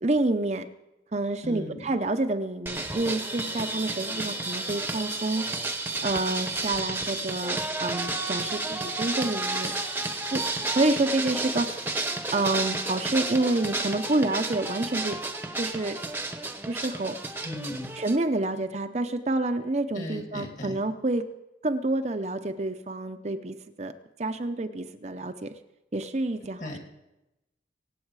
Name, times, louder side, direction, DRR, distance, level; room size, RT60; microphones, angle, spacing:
voice 1, 0.0-0.7 1.1-5.4 6.0-9.8 10.3-10.4 10.7-11.8 12.3-15.2 15.6-16.0 16.7-17.2 18.0-21.2 21.6-23.9 24.2-25.5 25.9-26.7, right 2 dB, 40° right, 7 dB, 0.7 m, -28 dB
voice 2, 1.4-2.0 17.4-17.9 19.9-20.8 26.6-26.8, left 1 dB, 45° left, 3 dB, 2.5 m, -37 dB
sound 1, 2.7-18.2, right 2 dB, 10° right, 1.0 m, -31 dB
24.5 x 8.4 x 4.8 m, 0.94 s
head